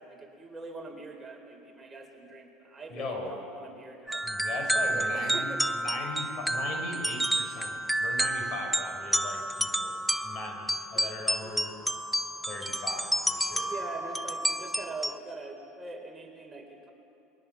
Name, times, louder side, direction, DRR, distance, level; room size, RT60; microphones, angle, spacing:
voice 1, 0.0-4.2 4.9-5.6 10.9-11.1 11.4-11.7 13.6-16.9, right 3 dB, 15° right, 1 dB, 4.0 m, -42 dB
voice 2, 2.9-3.3 4.2-11.7 12.5-13.8, left 2 dB, 50° left, 3 dB, 5.7 m, -39 dB
sound 1, 4.1-15.2, right 1 dB, 5° left, 0.9 m, -30 dB
28.0 x 22.0 x 7.1 m, 2.8 s
supercardioid pair, 105°, 0 cm